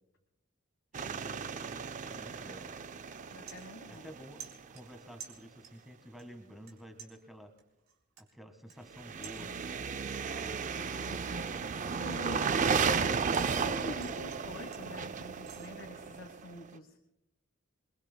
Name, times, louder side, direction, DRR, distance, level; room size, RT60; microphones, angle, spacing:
voice 1, 0.9-2.8 3.9-4.4 4.7-7.5 8.2-10.0 10.4-11.5, equal, ahead, 6 dB, 1.6 m, -51 dB
sound 1, 0.9-4.8 8.9-16.6, right 5 dB, 35° right, 0.5 m, -34 dB
voice 2, 3.3-4.1 12.0-13.2 13.5-17.0, left 1 dB, 65° left, 4 dB, 1.3 m, -46 dB
sound 2, 3.5-4.1 4.4-5.9 6.2-6.7 7.0-9.9 10.3-10.6 11.0-13.5 13.8-15.7, right 8 dB, 80° right, 3.8 m, -52 dB
27.5 x 22.0 x 2.3 m, 0.85 s
head